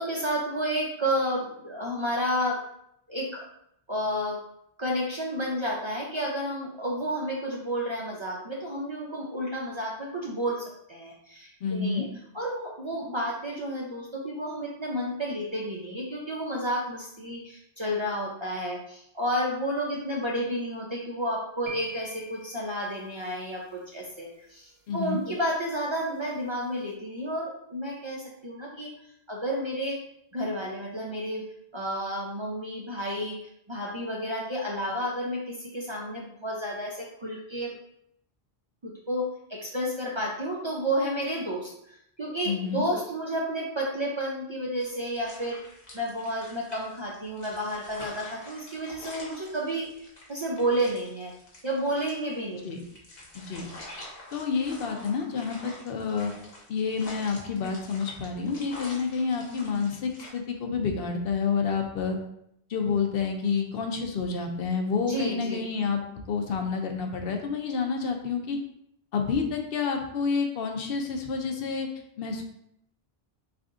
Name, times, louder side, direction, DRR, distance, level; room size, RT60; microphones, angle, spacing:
voice 1, 0.0-2.6 3.1-3.4 3.9-4.4 4.8-12.1 12.3-28.9 29.3-30.0 30.3-31.4 31.7-37.7 38.8-45.6 45.9-49.9 50.3-51.3 51.6-52.7 65.1-65.6, equal, 40° right, -3 dB, 0.5 m, -31 dB
voice 2, 11.6-12.1 24.9-25.2 42.5-42.9 52.6-52.8 53.3-53.7 54.3-56.3 56.7-62.2 62.7-66.0 66.3-68.6 69.1-71.9 72.2-72.4, left 5 dB, 70° left, 3 dB, 0.8 m, -29 dB
sound 1, 21.7-23.8, right 1 dB, 85° right, 0.8 m, -45 dB
sound 2, 44.8-60.3, left 1 dB, 45° left, 0.9 m, -47 dB
3.3 x 2.5 x 3.6 m, 0.74 s
omnidirectional pair, 1.0 m